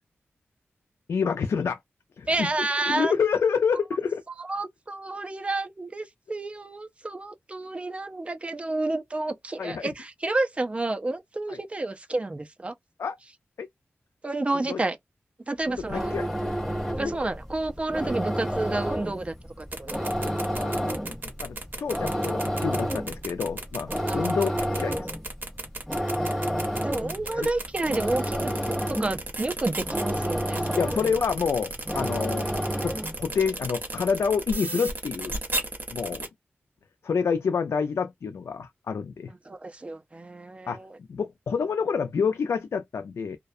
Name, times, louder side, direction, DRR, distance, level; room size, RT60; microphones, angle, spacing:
voice 1, 1.1-1.8 2.2-2.5 2.9-4.2 9.6-9.9 11.5-11.6 13.0-13.2 13.6-13.7 14.5-14.8 15.7-16.3 20.3-21.1 21.4-25.1 27.3-27.5 30.8-32.5 32.8-35.3 35.9-36.3 37.0-39.3 40.7-40.8 41.1-43.4, left 6 dB, 80° left, 0.3 m, -28 dB
voice 2, 2.3-3.1 4.4-12.7 14.2-15.0 15.5-16.2 17.0-20.1 24.1-24.4 26.8-28.5 28.9-30.8 39.5-41.0, right 2 dB, 25° right, 0.5 m, -30 dB
sound 1, 15.7-33.3, equal, ahead, 0.9 m, -30 dB
sound 2, 19.6-36.3, right 2 dB, 45° right, 1.0 m, -34 dB
2.3 x 2.2 x 2.5 m
wide cardioid pair, 105°, 5 cm